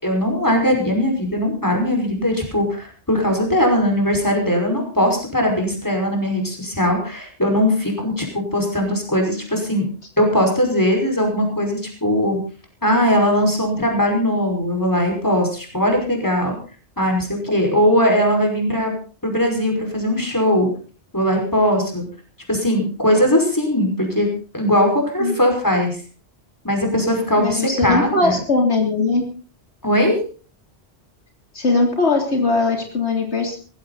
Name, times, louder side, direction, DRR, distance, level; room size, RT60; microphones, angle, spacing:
voice 1, 0.0-9.9 10.2-12.4 12.8-16.5 17.0-18.9 19.2-20.7 21.1-22.0 22.5-24.3 24.5-26.0 26.6-28.4 29.8-30.2, equal, 15° left, 2 dB, 5.3 m, -19 dB
voice 2, 27.4-29.2 31.5-33.6, left 3 dB, 80° left, 2 dB, 3.7 m, -20 dB
19.0 x 15.0 x 4.1 m, 0.39 s
omnidirectional pair, 1.1 m